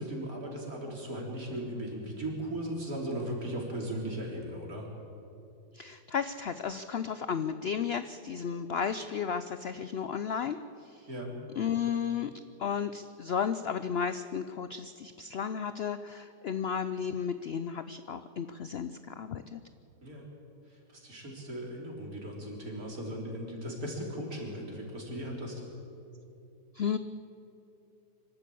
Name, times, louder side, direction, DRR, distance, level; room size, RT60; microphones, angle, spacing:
voice 1, 0.0-4.9 11.1-11.3 20.0-20.3 20.7-25.6, right 1 dB, 60° right, -1 dB, 4.0 m, -37 dB
voice 2, 5.7-10.6 10.8-11.1 11.6-12.3 12.6-19.6 26.7-27.0, left 7 dB, 75° left, 11 dB, 0.5 m, -33 dB
24.5 x 13.0 x 8.5 m, 2.7 s
omnidirectional pair, 1.8 m